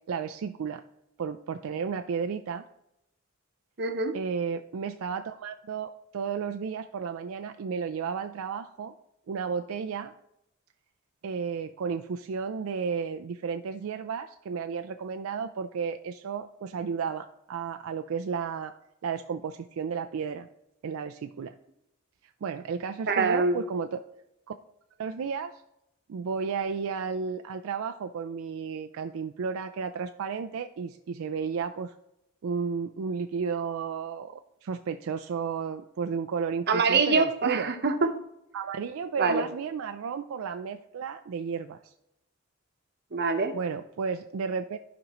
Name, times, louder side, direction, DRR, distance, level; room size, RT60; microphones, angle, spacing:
voice 1, 0.1-0.8 1.2-2.6 4.1-8.9 9.3-10.1 11.2-18.7 19.0-20.5 20.8-21.6 22.2-24.0 24.5-24.6 25.0-25.6 26.1-31.9 32.4-37.7 38.5-41.9 43.5-44.8, right 6 dB, 75° right, 7 dB, 0.4 m, -33 dB
voice 2, 3.8-4.1 23.1-23.6 36.7-38.1 39.2-39.4 43.1-43.5, right 4 dB, 50° right, 6 dB, 0.9 m, -24 dB
15.0 x 5.1 x 3.0 m, 0.84 s
head